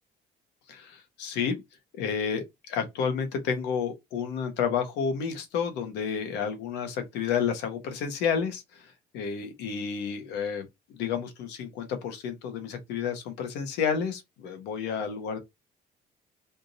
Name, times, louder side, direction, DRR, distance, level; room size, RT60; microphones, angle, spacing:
voice 1, 0.7-1.6 1.9-15.4, left 6 dB, 90° left, 1.3 m, -31 dB
3.5 x 2.8 x 2.7 m
cardioid pair, 110°, 17 cm